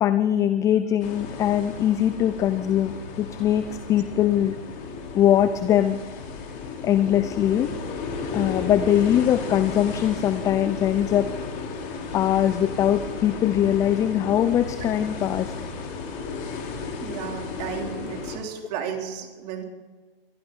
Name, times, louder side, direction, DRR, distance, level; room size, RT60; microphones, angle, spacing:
voice 1, 0.0-4.6 5.1-6.0 6.8-7.7 8.3-11.3 12.1-15.5, left 11 dB, 10° left, 12 dB, 0.4 m, -22 dB
sound 1, 1.0-18.4, left 4 dB, 40° left, 3.7 m, -34 dB
voice 2, 17.0-19.6, right 7 dB, 45° right, 3 dB, 3.4 m, -33 dB
23.0 x 14.0 x 4.0 m, 1.4 s
hypercardioid pair, 125°, 29 cm